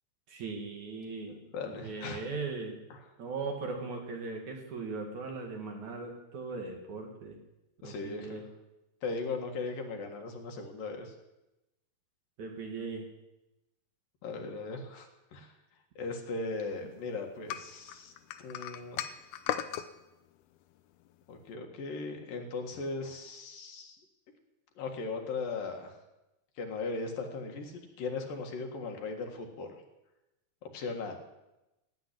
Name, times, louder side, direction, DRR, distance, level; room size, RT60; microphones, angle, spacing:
voice 1, 0.3-2.8 3.2-7.4 7.8-8.4 12.4-13.1, right 4 dB, 55° right, 2 dB, 3.2 m, -39 dB
voice 2, 1.2-2.2 7.8-8.4 9.0-11.1 14.2-15.5 16.0-18.1 18.4-19.0 21.3-24.0 24.8-25.9 26.6-29.7 30.6-31.2, left 3 dB, 65° left, 3 dB, 3.3 m, -38 dB
sound 1, 17.5-19.9, left 11 dB, 90° left, 2.7 m, -36 dB
16.5 x 8.4 x 10.0 m, 0.96 s
omnidirectional pair, 4.4 m